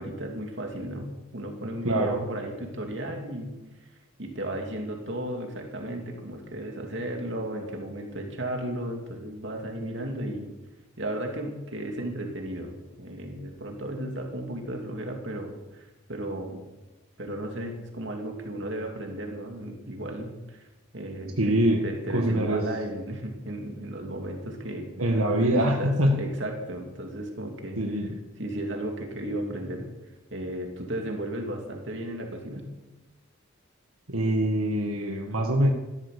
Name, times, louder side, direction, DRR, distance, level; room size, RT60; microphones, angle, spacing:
voice 1, 0.0-3.5 4.2-10.5 11.0-16.6 17.2-20.6 20.9-27.8 28.4-29.9 30.3-32.7, right 1 dB, 55° right, 2 dB, 3.0 m, -34 dB
voice 2, 1.8-2.2 21.4-21.9 22.1-22.7 25.0-26.2 27.8-28.2 34.1-35.7, right 1 dB, 85° right, 2 dB, 1.8 m, -24 dB
15.0 x 13.5 x 6.9 m, 1.1 s
head